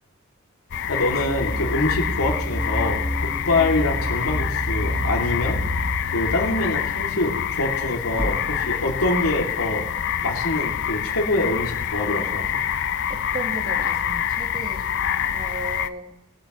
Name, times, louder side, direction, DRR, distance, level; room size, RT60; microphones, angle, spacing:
sound 1, 0.7-15.9, left 9 dB, 55° left, 0.5 m, -26 dB
voice 1, 0.9-5.6 6.1-9.9 10.2-12.6, left 2 dB, 90° left, 0 dB, 2.5 m, -25 dB
sound 2, 1.0-7.6, equal, 10° right, 0.8 m, -30 dB
sound 3, 8.2-12.0, equal, 10° left, 1.1 m, -37 dB
voice 2, 13.1-14.8 15.3-16.2, right 2 dB, 45° right, 5 dB, 1.4 m, -35 dB
20.5 x 7.7 x 3.0 m, 0.94 s
head